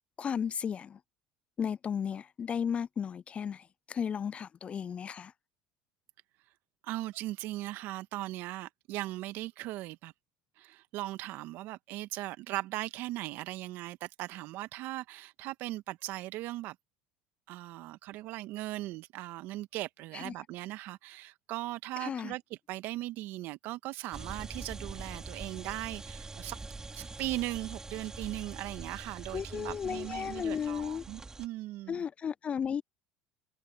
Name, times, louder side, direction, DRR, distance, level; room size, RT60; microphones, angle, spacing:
voice 1, 0.2-1.0 1.6-5.3 20.1-20.4 22.0-22.3 29.3-31.0 31.9-32.8, left 7 dB, 35° left, 0.3 m, -34 dB
voice 2, 6.8-10.1 10.6-16.7 17.5-26.6 26.9-32.0, right 17 dB, 65° right, 1.4 m, -39 dB
sound 1, 24.1-31.5, right 3 dB, 15° right, 2.6 m, -44 dB
hypercardioid pair, 80°, 4 cm